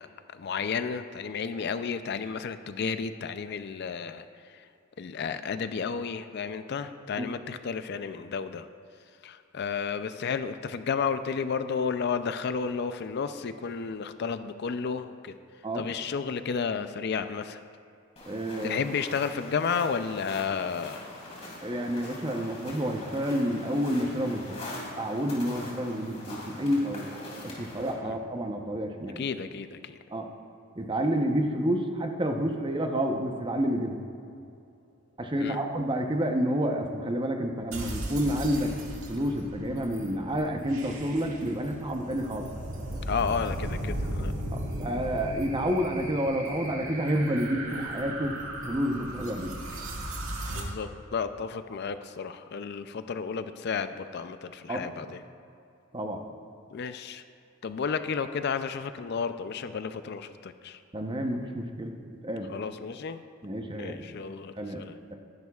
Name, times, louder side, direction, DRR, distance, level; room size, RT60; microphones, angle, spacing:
voice 1, 0.0-4.3 4.5-4.7 5.0-8.7 9.2-15.4 15.7-17.6 18.6-21.1 28.0-28.1 29.2-30.0 35.4-35.6 43.1-44.3 50.5-55.2 56.7-57.2 57.6-60.8 62.5-63.2 63.8-65.0, left 6 dB, 55° left, 10 dB, 0.4 m, -32 dB
sound 1, 18.2-27.9, left 1 dB, 30° left, 2.9 m, -43 dB
voice 2, 18.3-18.8 21.6-24.6 25.0-27.0 27.4-29.2 30.1-30.3 30.8-34.0 35.2-38.7 39.1-42.5 44.5-48.4 48.6-49.5 54.7-54.8 55.9-56.2 60.9-61.9 62.2-62.5 63.4-64.0 64.6-64.8, equal, 25° right, 3 dB, 0.8 m, -29 dB
sound 2, 37.7-50.6, right 1 dB, 85° right, 1.9 m, -36 dB
19.0 x 10.5 x 2.4 m, 2.6 s
head